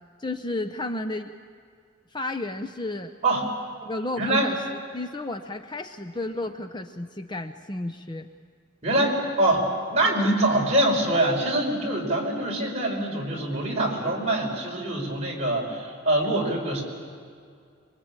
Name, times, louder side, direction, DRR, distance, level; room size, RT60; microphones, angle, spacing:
voice 1, 0.2-1.3 2.1-3.1 3.8-4.6 4.9-8.3, left 2 dB, 20° left, 7 dB, 0.7 m, -32 dB
voice 2, 4.2-4.5 8.8-16.8, right 1 dB, 35° right, -2 dB, 5.5 m, -24 dB
26.0 x 23.0 x 8.9 m, 2.2 s
head